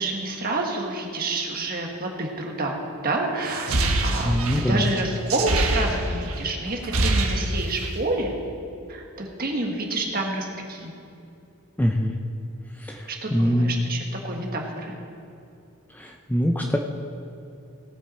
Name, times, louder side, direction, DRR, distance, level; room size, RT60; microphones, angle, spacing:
voice 1, 0.0-2.8 3.0-8.3 8.9-10.9 13.1-14.9, right 2 dB, 40° right, 1 dB, 1.6 m, -28 dB
sound 1, 3.4-6.4 6.7-8.0, right 2 dB, 70° right, 1.3 m, -24 dB
voice 2, 4.2-4.8 11.8-12.1 12.9-13.0 13.3-13.8 16.0-16.8, equal, 10° left, 2 dB, 0.5 m, -23 dB
18.0 x 8.3 x 4.3 m, 2.7 s
head